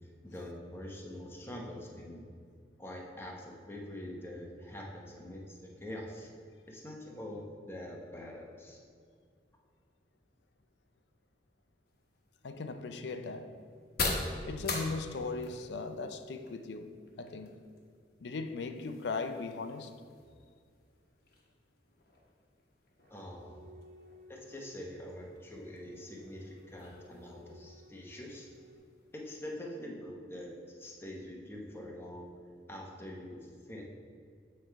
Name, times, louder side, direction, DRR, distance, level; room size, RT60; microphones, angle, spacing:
voice 1, 0.2-2.2 2.8-6.3 6.7-8.8 23.1-23.7 24.3-28.5 29.1-32.3 32.7-33.8, left 1 dB, 15° left, 0.8 m, -44 dB
sound 1, 11.9-29.5, left 3 dB, 55° left, 1.0 m, -44 dB
voice 2, 12.4-13.6 14.5-17.6 18.2-19.9, left 4 dB, 70° left, 0.4 m, -38 dB
sound 2, 23.0-28.8, equal, 80° right, 0.6 m, -58 dB
7.7 x 3.2 x 4.5 m
head